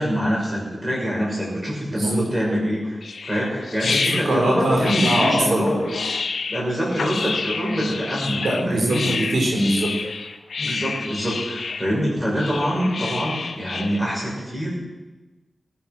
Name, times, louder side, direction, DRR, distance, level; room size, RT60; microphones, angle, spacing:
voice 1, 0.0-6.0 6.5-9.0 10.6-14.8, equal, 10° right, -4 dB, 5.9 m, -25 dB
voice 2, 1.9-2.3 3.8-5.7 8.4-10.0, right 1 dB, 75° right, 0 dB, 4.4 m, -22 dB
sound 1, 3.0-14.0, left 4 dB, 85° left, 1.0 m, -28 dB
20.0 x 8.9 x 6.2 m, 1.1 s
wide cardioid pair, 120°, 0 cm